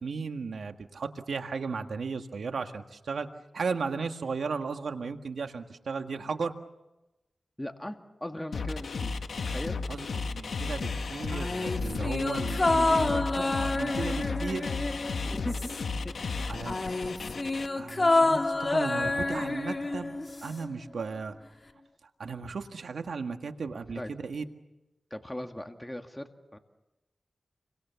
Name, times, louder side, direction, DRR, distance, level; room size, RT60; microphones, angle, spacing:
voice 1, 0.0-3.3 3.5-6.6 9.9-14.7 16.5-16.8 17.8-21.3 22.2-24.5, right 5 dB, 85° right, 6 dB, 1.7 m, -35 dB
voice 2, 7.6-9.8 15.0-15.2 15.4-15.7 16.1-16.5 24.0-24.1 25.1-26.6, left 1 dB, 10° left, 5 dB, 2.2 m, -39 dB
sound 1, 8.5-17.7, left 4 dB, 90° left, 1.3 m, -34 dB
sound 2, 11.3-16.1 16.3-20.7 20.9-21.0, left 2 dB, 35° left, 1.9 m, -28 dB
29.5 x 24.5 x 7.1 m, 0.99 s
cardioid pair, 60°, 0 cm